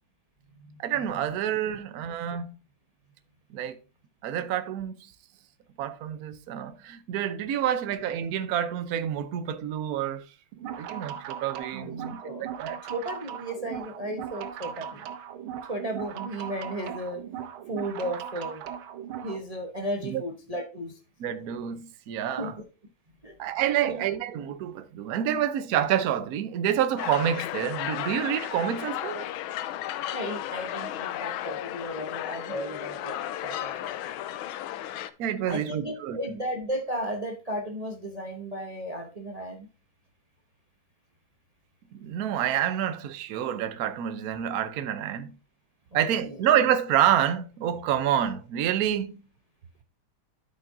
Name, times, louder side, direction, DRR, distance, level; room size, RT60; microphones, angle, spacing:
voice 1, 0.8-2.5 3.5-3.8 4.2-5.1 5.8-10.2 10.8-12.2 12.6-12.8 20.0-20.2 21.2-22.6 23.4-29.2 35.2-36.4 41.9-45.3 45.9-49.2, right 10 dB, 60° right, 1.0 m, -28 dB
sound 1, 10.5-19.4, right 9 dB, 85° right, 1.6 m, -38 dB
voice 2, 11.7-15.1 15.7-17.2 17.7-18.6 19.2-20.9 22.4-22.5 23.2-23.3 23.8-24.0 28.8-28.9 30.1-33.2 33.4-33.9 35.5-39.7 46.2-46.4, right 1 dB, 30° right, 0.6 m, -34 dB
sound 2, 27.0-35.1, left 12 dB, 85° left, 1.4 m, -34 dB
12.5 x 5.7 x 2.6 m
omnidirectional pair, 2.2 m